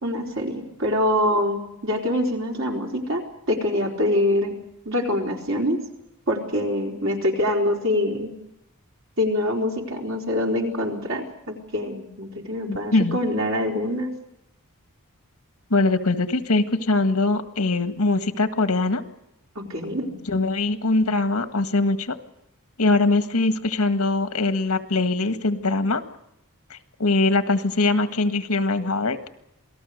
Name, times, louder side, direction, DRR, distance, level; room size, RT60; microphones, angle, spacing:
voice 1, 0.0-4.6 4.9-5.8 6.3-8.3 9.2-14.1 19.7-20.1, left 1 dB, 65° right, 0 dB, 4.2 m, -25 dB
voice 2, 12.7-13.2 15.7-19.0 20.3-22.2 22.8-26.0 26.7-29.2, left 2 dB, 85° left, 8 dB, 1.7 m, -22 dB
27.5 x 19.0 x 6.6 m, 0.84 s
head